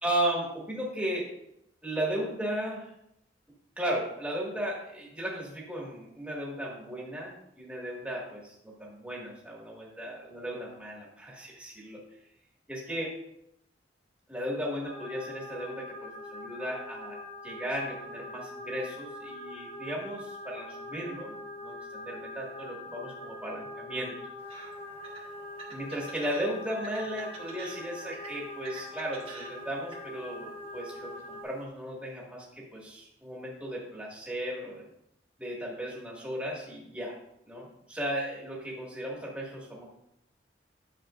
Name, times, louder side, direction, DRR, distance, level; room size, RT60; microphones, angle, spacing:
voice 1, 0.0-1.3 1.8-2.9 3.8-12.0 12.7-13.1 14.3-17.2 17.4-24.1 25.7-34.8 35.4-37.1 37.5-39.9, right 1 dB, 5° right, -4 dB, 1.9 m, -35 dB
sound 1, 14.8-31.4, left 1 dB, 45° left, 2.3 m, -43 dB
sound 2, 24.4-31.6, right 3 dB, 35° right, 1.3 m, -49 dB
10.0 x 6.6 x 2.5 m, 0.80 s
head